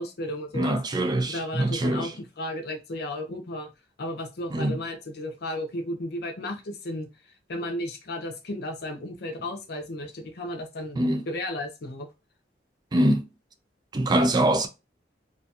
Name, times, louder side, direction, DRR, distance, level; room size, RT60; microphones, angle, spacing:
voice 1, 0.0-0.8 1.3-3.7 4.0-7.1 7.5-12.1, left 1 dB, 60° left, 0.6 m, -34 dB
voice 2, 0.5-2.1 4.5-4.8 11.0-11.2 12.9-13.3 13.9-14.7, right 1 dB, 25° right, 0.3 m, -24 dB
2.4 x 2.3 x 2.6 m
head